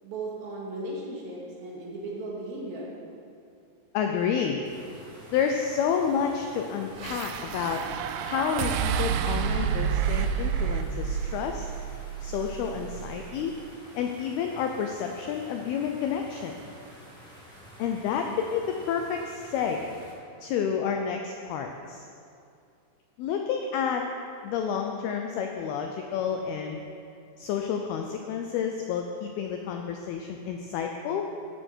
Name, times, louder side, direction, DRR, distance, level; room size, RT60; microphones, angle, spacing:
voice 1, 0.0-3.0, right 2 dB, 60° right, -4 dB, 3.4 m, -36 dB
voice 2, 3.9-4.6 5.3-7.8 8.2-11.7 12.2-13.5 14.0-16.6 17.8-19.8 20.4-22.1 23.2-24.1 24.4-26.8 27.4-31.3, left 7 dB, 85° left, 3 dB, 2.2 m, -30 dB
sound 1, 4.6-20.1, equal, ahead, 1.3 m, -49 dB
sound 2, 7.0-13.3, right 8 dB, 90° right, 2.3 m, -30 dB
14.0 x 11.0 x 4.5 m, 2.5 s
omnidirectional pair, 5.3 m